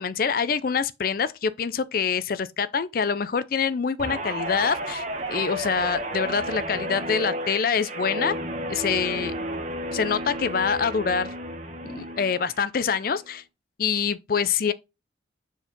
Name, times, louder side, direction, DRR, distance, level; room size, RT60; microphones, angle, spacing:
voice 1, 0.0-8.3 8.7-9.3 9.9-11.3 11.8-13.4 13.8-14.7, left 6 dB, 50° left, 0.4 m, -25 dB
Guitar, 4.0-12.6 13.0-13.3, right 1 dB, 40° right, 1.1 m, -32 dB
4.8 x 4.4 x 5.1 m
head